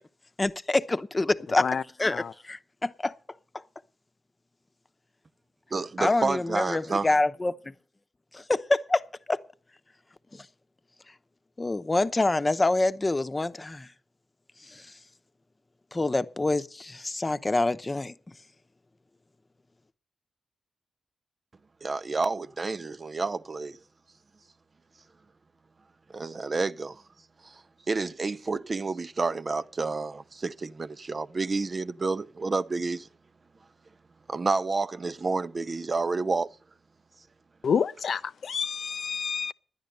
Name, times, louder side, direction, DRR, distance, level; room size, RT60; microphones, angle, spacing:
voice 1, 0.4-1.7 2.0-3.1 6.0-7.6 8.3-9.0 9.3-9.4 11.6-13.9 14.7-14.8 15.9-18.1, left 2 dB, 30° left, 0.9 m, -26 dB
voice 2, 5.7-7.1 21.8-23.8 26.1-27.0 27.9-33.1 34.3-36.5, right 3 dB, 45° right, 0.6 m, -29 dB
voice 3, 37.6-39.5, left 6 dB, 70° left, 0.5 m, -28 dB
10.5 x 10.0 x 6.7 m
supercardioid pair, 45°, 0 cm